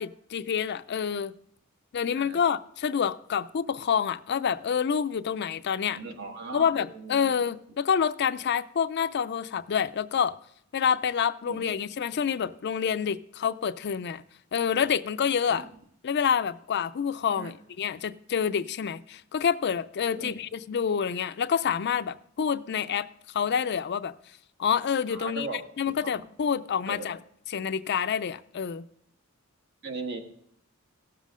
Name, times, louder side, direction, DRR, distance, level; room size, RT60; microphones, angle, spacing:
voice 1, 0.0-1.3 1.9-6.0 6.5-10.3 10.7-14.2 14.5-15.7 16.0-23.1 23.3-24.1 24.6-25.5 25.8-27.2 27.5-28.8, left 7 dB, 55° left, 13 dB, 0.4 m, -27 dB
voice 2, 5.9-7.5 11.5-11.7 15.6-15.7 17.4-17.5 20.2-20.4 25.1-25.6 26.0-26.2 26.9-27.1 29.8-30.2, right 3 dB, 55° right, 3 dB, 1.5 m, -38 dB
17.5 x 7.5 x 3.6 m, 0.71 s
head